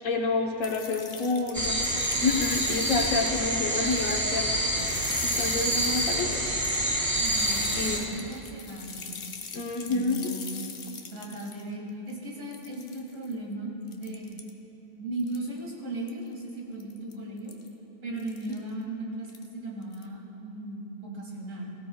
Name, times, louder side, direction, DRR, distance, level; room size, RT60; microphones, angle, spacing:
voice 1, 0.0-1.8 2.2-4.5 5.2-6.4 7.7-8.1 9.5-10.4, left 3 dB, 90° left, 2 dB, 1.5 m, -28 dB
sound 1, 0.6-3.4 3.7-4.5 4.8-11.6 12.1-12.2 12.5-13.3 13.9-14.5 15.2-15.6 16.1-16.3 16.8-17.1 17.5-17.7 18.2-18.6 19.2-19.5 19.8-20.0, left 6 dB, 55° left, 1.0 m, -41 dB
sound 2, 1.5-8.0, right 1 dB, 15° right, 1.3 m, -27 dB
voice 2, 7.2-9.2 9.9-10.5 11.1-14.3 15.0-17.5 18.0-21.7, right 1 dB, 70° right, -3 dB, 2.7 m, -37 dB
17.5 x 16.5 x 2.3 m, 3.0 s
omnidirectional pair, 1.3 m